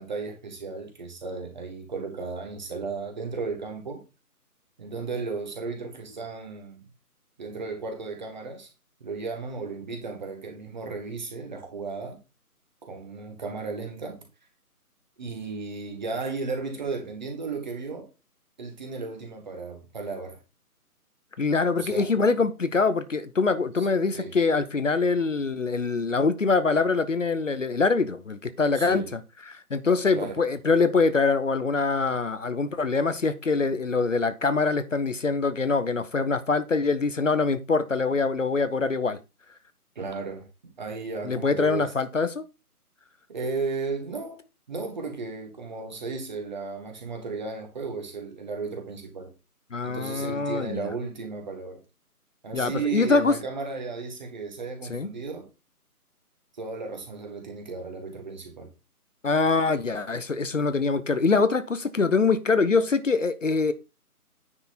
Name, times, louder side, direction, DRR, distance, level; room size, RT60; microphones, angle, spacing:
voice 1, 0.0-4.0 4.8-6.8 7.4-8.7 9.0-12.2 12.8-14.2 15.2-18.1 18.6-20.4 21.8-22.1 23.8-23.9 24.1-24.3 28.7-29.1 30.1-30.4 40.0-41.9 43.3-44.4 44.7-49.3 49.8-51.8 52.4-55.5 56.6-58.7, right 4 dB, 30° right, 1.9 m, -34 dB
voice 2, 21.4-29.2 29.5-39.2 41.2-42.4 49.7-50.9 52.5-53.4 54.9-55.1 59.2-63.7, left 4 dB, 55° left, 0.9 m, -24 dB
9.6 x 5.1 x 4.2 m
figure-of-eight pair, 155°, 46 cm